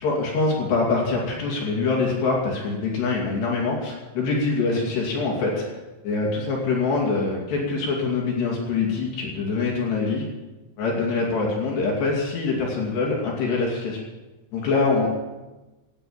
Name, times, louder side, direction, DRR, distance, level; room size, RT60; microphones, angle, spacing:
voice 1, 0.0-5.6 6.0-10.3 10.8-14.0 14.5-15.1, left 3 dB, 65° left, -2 dB, 4.6 m, -24 dB
18.0 x 10.0 x 7.3 m, 1.1 s
omnidirectional pair, 5.4 m